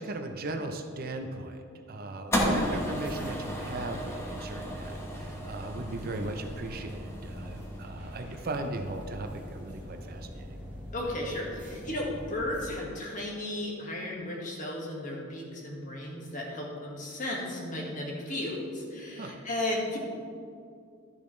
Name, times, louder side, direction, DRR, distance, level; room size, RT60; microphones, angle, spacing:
voice 1, 0.0-10.5 19.2-19.4, right 2 dB, 50° right, 5 dB, 0.6 m, -37 dB
sound 1, 2.3-8.6, equal, 15° left, 1.1 m, -34 dB
sound 2, 2.3-12.7, equal, 5° right, 1.8 m, -42 dB
voice 2, 10.9-20.0, left 1 dB, 40° left, -3 dB, 1.7 m, -34 dB
11.5 x 6.9 x 3.2 m, 2.3 s
head